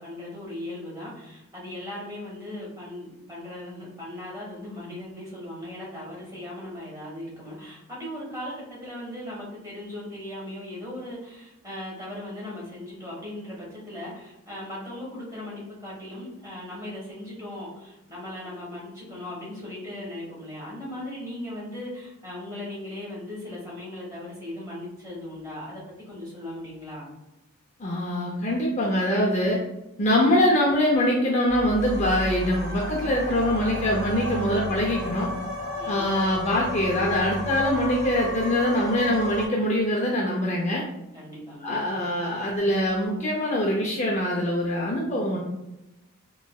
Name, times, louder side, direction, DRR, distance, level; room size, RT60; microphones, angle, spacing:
voice 1, 0.0-25.8 26.1-27.1 35.7-36.1 41.1-41.9, left 1 dB, 15° right, -6 dB, 1.3 m, -38 dB
voice 2, 27.8-29.6 30.0-35.3 35.9-40.8 41.6-45.4, left 1 dB, 30° left, -3 dB, 0.5 m, -23 dB
sound 1, 31.5-39.5, left 1 dB, 50° right, 1.3 m, -32 dB
3.7 x 3.1 x 2.3 m, 0.92 s
head